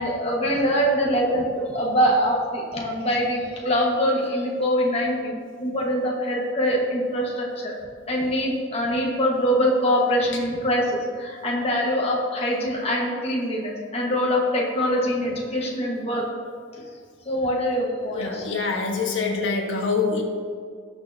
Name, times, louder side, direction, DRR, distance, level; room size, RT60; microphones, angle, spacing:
voice 1, 0.0-7.7 8.1-16.3 17.2-18.4, equal, 30° left, -2 dB, 1.5 m, -24 dB
voice 2, 18.1-20.2, left 4 dB, 80° left, 0 dB, 1.5 m, -25 dB
19.0 x 6.4 x 2.8 m, 2.1 s
head